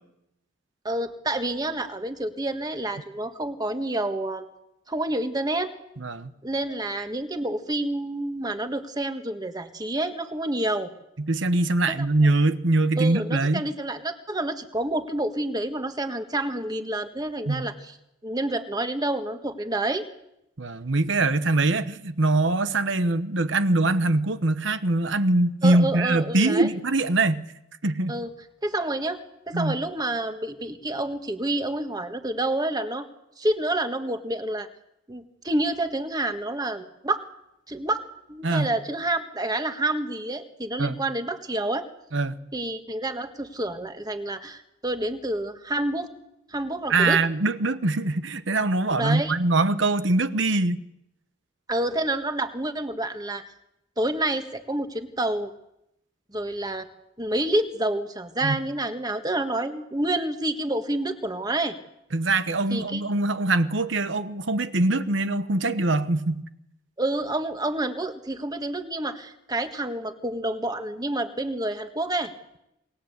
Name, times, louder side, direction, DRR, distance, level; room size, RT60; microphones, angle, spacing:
voice 1, 0.8-4.4 4.9-5.7 6.4-10.9 11.9-12.0 12.2-12.3 13.0-17.9 18.2-20.1 25.6-26.7 28.1-28.3 28.6-29.2 29.5-33.0 33.4-34.7 35.1-37.2 37.7-38.0 38.3-41.9 42.5-46.1 46.5-47.2 48.9-49.3 51.7-53.4 54.0-55.5 56.3-56.9 57.2-61.7 62.7-63.0 67.0-72.3, right 1 dB, 20° right, 1.6 m, -28 dB
voice 2, 6.0-6.3 11.2-13.6 17.5-17.7 20.6-27.5 27.8-28.2 29.5-29.7 38.4-38.7 40.8-41.0 42.1-42.4 46.9-50.8 58.4-58.6 62.1-66.4, right 2 dB, 65° right, 1.1 m, -23 dB
28.5 x 20.0 x 8.2 m
head